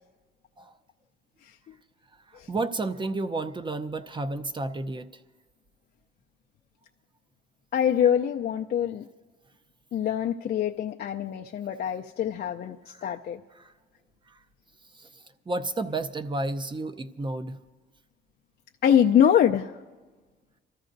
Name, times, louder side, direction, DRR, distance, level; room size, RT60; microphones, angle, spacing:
voice 1, 2.5-5.1 12.9-13.1 13.5-13.7 14.3-14.4 14.9-15.1 15.5-17.6, right 2 dB, 25° right, 10 dB, 0.6 m, -31 dB
voice 2, 7.7-9.0 9.9-13.4 18.8-19.7, left 9 dB, 55° left, 2 dB, 0.5 m, -24 dB
27.5 x 14.0 x 2.6 m, 1.3 s
cardioid pair, 90°, 20 cm